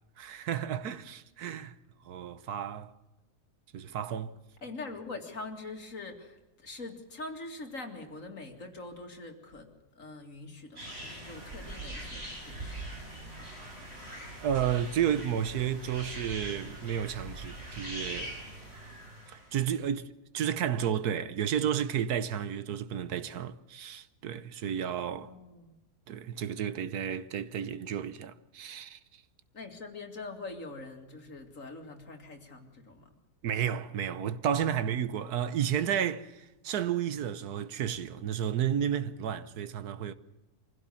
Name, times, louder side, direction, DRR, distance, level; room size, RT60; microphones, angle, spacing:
voice 1, 0.2-1.7 2.0-2.9 3.7-4.4 14.4-18.4 19.3-25.3 26.1-29.2 33.4-40.1, right 9 dB, 75° right, 1.4 m, -32 dB
voice 2, 4.6-13.6 25.2-25.8 29.5-33.1, left 3 dB, 55° left, 2.7 m, -44 dB
sound 1, 10.8-19.5, right 1 dB, 40° right, 6.9 m, -42 dB
24.5 x 16.0 x 7.1 m
omnidirectional pair, 1.7 m